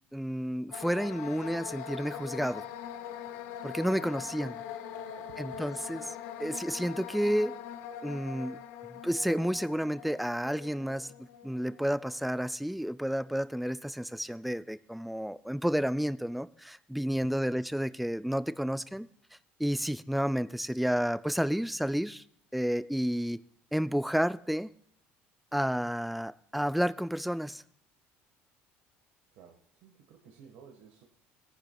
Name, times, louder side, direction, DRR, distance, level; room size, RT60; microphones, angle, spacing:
voice 1, 0.1-2.6 3.6-4.5 5.4-7.6 8.0-8.6 8.9-19.1 19.6-22.2 22.5-23.4 23.7-24.7 25.5-27.6, equal, ahead, 14 dB, 0.3 m, -31 dB
sound 1, 0.7-12.6, left 8 dB, 80° left, 0.6 m, -43 dB
voice 2, 5.2-5.6 29.3-31.0, right 7 dB, 75° right, 1 dB, 1.4 m, -55 dB
19.5 x 9.9 x 2.3 m, 0.68 s
cardioid pair, 155°, 4 cm